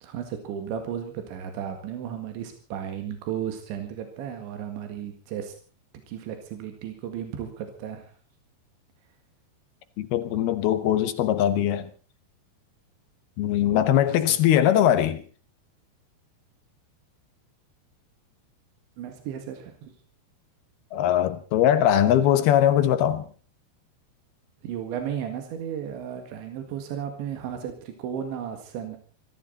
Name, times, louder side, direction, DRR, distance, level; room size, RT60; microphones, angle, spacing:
voice 1, 0.0-5.5 6.1-8.1 13.7-14.4 19.0-19.9 24.6-29.0, right 9 dB, 85° right, 4.3 m, -34 dB
voice 2, 10.0-11.9 13.4-15.2 20.9-23.3, left 11 dB, 70° left, 2.8 m, -21 dB
24.5 x 14.5 x 4.1 m
omnidirectional pair, 5.1 m